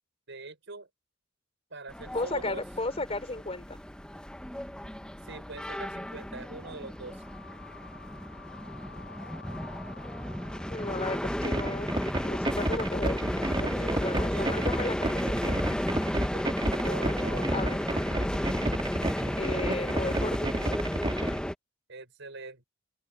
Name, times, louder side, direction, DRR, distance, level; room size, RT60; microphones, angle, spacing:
voice 1, 0.3-0.9 1.7-2.6 5.2-7.2 13.7-14.7 16.2-17.7 21.9-22.6, right 3 dB, 65° right, 6.0 m, -43 dB
sound 1, 1.9-21.5, equal, 5° left, 0.9 m, -33 dB
voice 2, 2.1-3.8 10.7-15.7 16.8-17.1 17.5-17.8 19.4-20.8, left 2 dB, 30° left, 3.2 m, -35 dB
sound 2, 6.8-14.7, left 5 dB, 60° left, 6.6 m, -52 dB
sound 3, 11.4-21.4, right 1 dB, 25° right, 2.4 m, -31 dB
open air
head